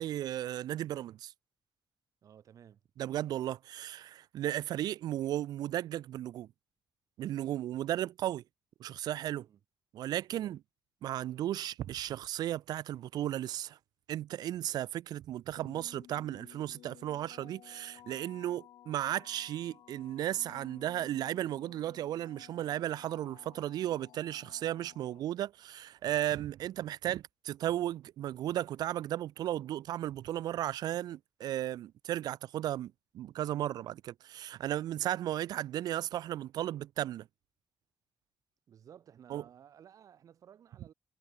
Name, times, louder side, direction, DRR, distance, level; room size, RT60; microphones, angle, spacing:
voice 1, 0.0-1.3 3.0-6.5 7.2-8.4 8.8-9.5 9.9-10.6 11.0-13.8 14.1-37.3 39.3-39.4, right 12 dB, 80° right, 0.4 m, -35 dB
voice 2, 2.2-2.8 9.4-9.6 10.3-10.5 38.7-40.9, right 9 dB, 55° right, 4.9 m, -56 dB
sound 1, 15.6-25.2, left 12 dB, 90° left, 1.7 m, -56 dB
wide cardioid pair, 155°, 7 cm